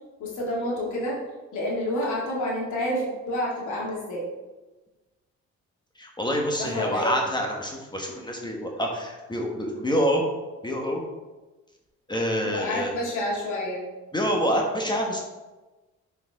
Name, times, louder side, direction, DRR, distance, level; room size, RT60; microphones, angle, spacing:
voice 1, 0.2-1.2 1.5-4.2 6.6-7.1 12.4-13.8, left 1 dB, 80° left, -4 dB, 2.2 m, -29 dB
voice 2, 6.0-10.2 10.6-11.0 12.1-12.9 14.1-15.2, equal, 15° left, 0 dB, 1.3 m, -26 dB
7.0 x 4.8 x 3.6 m, 1.1 s
cardioid pair, 90°, 30 cm